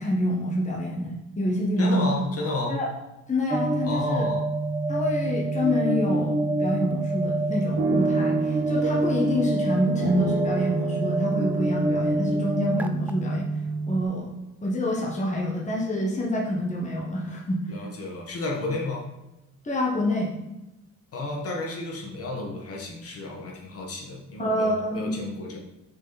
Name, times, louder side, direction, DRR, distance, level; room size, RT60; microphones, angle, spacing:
voice 1, 0.0-2.2 2.7-2.9 3.3-4.3 4.9-13.5 13.9-14.3 14.6-17.7 19.6-20.3 24.4-25.1, left 1 dB, 25° left, -3 dB, 1.3 m, -27 dB
voice 2, 1.8-2.8 3.8-4.5 17.7-19.1 21.1-25.6, left 2 dB, 50° left, 0 dB, 1.6 m, -32 dB
sound 1, 3.5-14.0, right 2 dB, 5° right, 0.3 m, -27 dB
sound 2, 7.8-13.8, right 4 dB, 70° right, 1.7 m, -31 dB
6.1 x 4.4 x 4.1 m, 0.98 s
cardioid pair, 90°, 30 cm